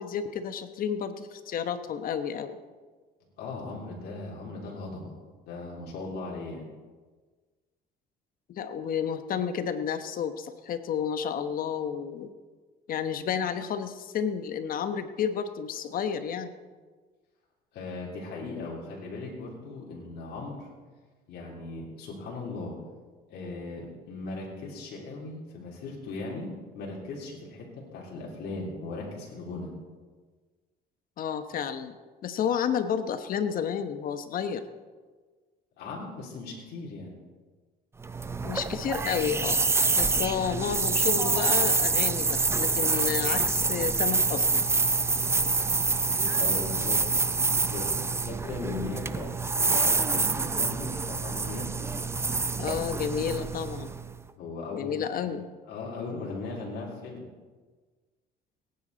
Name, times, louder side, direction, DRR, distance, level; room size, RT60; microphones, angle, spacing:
voice 1, 0.0-2.6 8.5-12.3 12.9-16.5 31.2-31.9 32.2-34.6 38.4-39.6 40.0-44.6 48.6-48.9 52.6-53.9 54.7-55.5, left 8 dB, 55° left, 9 dB, 1.1 m, -31 dB
voice 2, 3.4-5.2 5.5-6.7 17.7-20.7 21.3-22.7 23.3-29.7 35.8-37.2 46.3-47.0 47.5-47.9 48.2-51.7 54.4-55.3 55.7-57.2, left 3 dB, 75° left, -4 dB, 3.2 m, -38 dB
sound 1, 38.0-54.2, right 4 dB, 15° right, 0.5 m, -26 dB
18.5 x 9.8 x 4.0 m, 1.4 s
cardioid pair, 110°, 17 cm